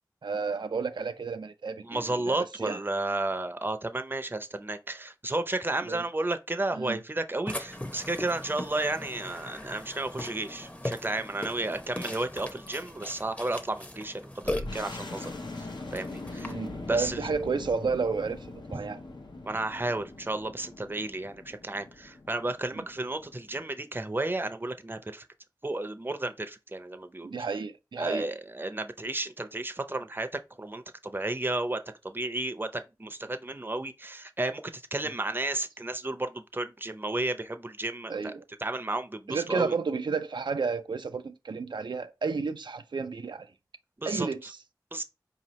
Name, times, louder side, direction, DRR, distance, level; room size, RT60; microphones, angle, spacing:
voice 1, 0.2-2.8 5.9-6.0 6.7-7.0 16.4-19.0 22.7-22.8 27.2-28.3 38.1-38.4 39.3-43.5 44.0-44.6, right 5 dB, 90° right, 0.4 m, -32 dB
voice 2, 1.8-15.3 15.6-16.6 16.9-17.2 18.7-18.9 19.5-25.3 25.6-27.3 28.0-31.8 32.0-38.3 38.6-39.7 44.0-44.3 44.9-45.0, right 2 dB, 30° right, 0.5 m, -32 dB
Burping eructation, 7.5-16.5, left 1 dB, 20° left, 0.7 m, -39 dB
sound 1, 14.4-23.6, left 2 dB, 80° left, 0.8 m, -42 dB
4.8 x 2.8 x 3.0 m
wide cardioid pair, 40°, 8 cm